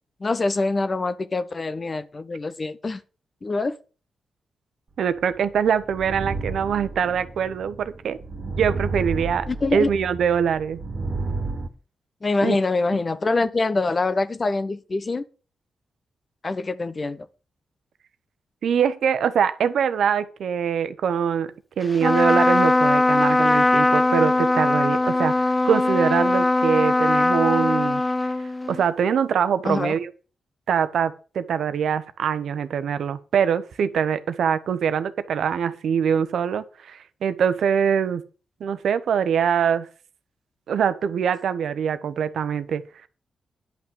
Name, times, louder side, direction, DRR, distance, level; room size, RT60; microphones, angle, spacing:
voice 1, 0.2-3.0 3.4-3.7 9.5-9.9 12.2-15.2 16.4-17.2 29.6-29.9, left 3 dB, 45° left, 0.9 m, -24 dB
voice 2, 5.0-8.2 8.6-9.5 9.7-10.8 12.4-12.6 18.6-28.0 28.7-30.1 30.7-38.2 38.6-39.9 40.7-42.8, right 7 dB, 75° right, 0.9 m, -23 dB
sound 1, 5.2-11.7, right 3 dB, 55° right, 1.6 m, -32 dB
Trumpet, 21.9-28.8, left 2 dB, 25° left, 0.4 m, -20 dB
10.5 x 6.0 x 6.9 m
supercardioid pair, 45°, 0 cm